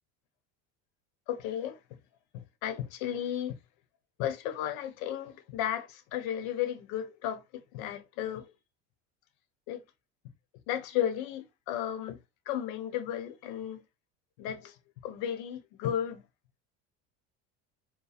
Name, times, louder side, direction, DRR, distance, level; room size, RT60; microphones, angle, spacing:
voice 1, 1.3-2.0 2.3-3.6 4.2-8.5 9.7-9.8 10.7-12.2 12.5-13.8 14.4-14.8 15.0-16.2, left 10 dB, 70° left, 1.0 m, -34 dB
4.8 x 2.3 x 3.4 m
hypercardioid pair, 85°, 41 cm